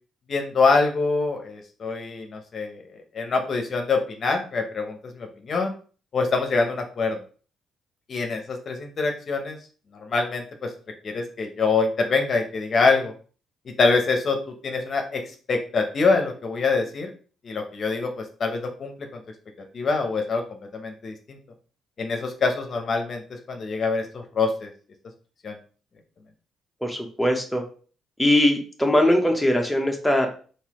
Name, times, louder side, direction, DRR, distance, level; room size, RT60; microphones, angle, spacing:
voice 1, 0.3-2.8 3.1-5.8 6.1-7.2 8.1-9.6 10.1-10.7 11.0-13.1 13.8-14.4 14.6-15.2 15.5-17.1 17.4-18.9 19.7-20.4 20.7-21.4 22.0-23.2 23.5-24.7 25.4-25.6, left 4 dB, 50° left, 4 dB, 0.7 m, -24 dB
voice 2, 26.8-27.6 28.2-30.3, left 1 dB, 5° left, 2 dB, 0.7 m, -21 dB
3.9 x 2.6 x 2.9 m, 0.40 s
cardioid pair, 90°, 0 cm